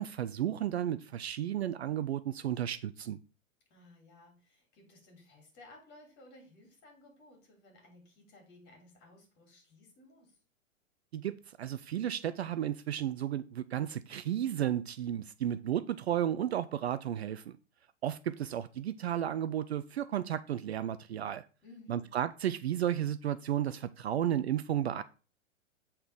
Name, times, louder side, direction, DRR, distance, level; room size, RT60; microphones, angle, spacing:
voice 1, 0.0-3.2 11.1-17.6 18.0-21.5 21.9-25.0, right 11 dB, 55° right, 0.5 m, -33 dB
voice 2, 3.7-10.4 21.6-22.1, left 2 dB, 25° left, 3.4 m, -57 dB
7.8 x 4.3 x 5.0 m
figure-of-eight pair, 110°, 40 cm